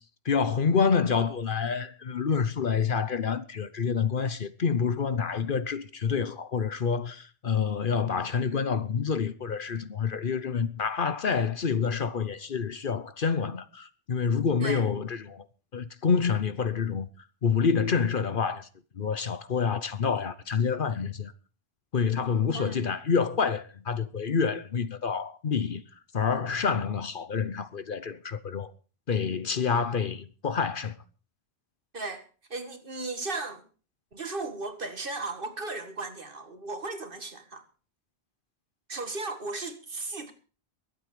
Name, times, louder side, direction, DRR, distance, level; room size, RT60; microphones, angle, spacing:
voice 1, 0.2-15.4 15.7-17.1 17.4-18.7 19.0-21.3 21.9-25.8 26.1-28.7 29.1-30.9, left 6 dB, 55° left, 1.0 m, -27 dB
voice 2, 22.5-22.9 31.9-32.2 32.5-33.7 34.1-37.6 38.9-40.3, right 3 dB, 55° right, 2.0 m, -36 dB
22.5 x 8.5 x 4.9 m
omnidirectional pair, 1.1 m